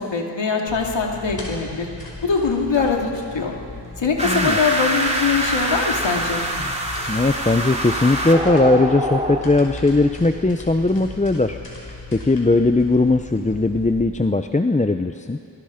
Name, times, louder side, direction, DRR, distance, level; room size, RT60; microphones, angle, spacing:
voice 1, 0.0-1.9 2.2-3.6 4.0-6.4, left 5 dB, 90° left, 0 dB, 2.5 m, -22 dB
sound 1, 0.7-14.0, left 2 dB, 55° left, 5.6 m, -37 dB
voice 2, 4.2-4.6 6.6-6.7 7.1-15.4, left 2 dB, 15° left, 7 dB, 0.7 m, -19 dB
sound 2, 4.2-9.4, right 1 dB, 15° right, 3.1 m, -24 dB
26.5 x 22.5 x 5.2 m, 2.5 s
cardioid pair, 50°, 43 cm